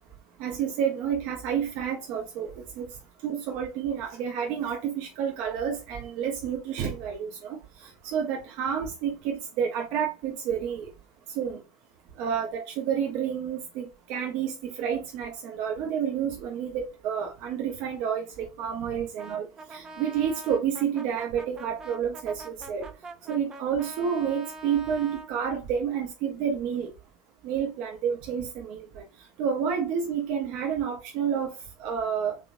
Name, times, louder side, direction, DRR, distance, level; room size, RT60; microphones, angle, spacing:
voice 1, 0.4-2.5 2.8-2.9 3.2-10.9 11.4-11.6 12.2-19.4 19.7-22.8 23.3-26.9 27.4-29.0 29.4-32.4, right 8 dB, 55° right, 1.0 m, -29 dB
Brass instrument, 19.2-25.3, right 2 dB, 25° right, 0.6 m, -44 dB
3.6 x 3.4 x 2.5 m
hypercardioid pair, 90°, 2 cm